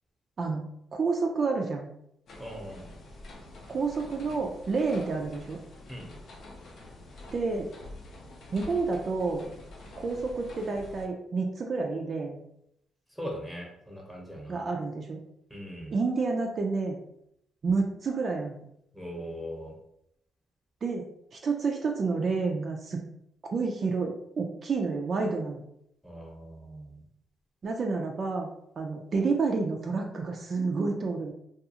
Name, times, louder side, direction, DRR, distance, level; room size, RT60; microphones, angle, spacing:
voice 1, 0.9-1.9 3.7-5.6 7.3-7.7 8.5-9.4 10.0-12.4 14.5-15.2 15.9-17.0 17.6-18.6 20.8-23.0 23.5-25.6 27.6-28.5 28.8-31.3, right 4 dB, 45° right, 1 dB, 0.3 m, -29 dB
sound 1, 2.3-11.1, left 2 dB, 60° left, 0.6 m, -47 dB
voice 2, 2.4-2.9 5.9-6.1 13.1-14.7 15.5-16.0 18.9-19.7 26.0-27.0, equal, 5° left, -2 dB, 0.9 m, -40 dB
2.4 x 2.3 x 2.8 m, 0.76 s
cardioid pair, 90°, 0 cm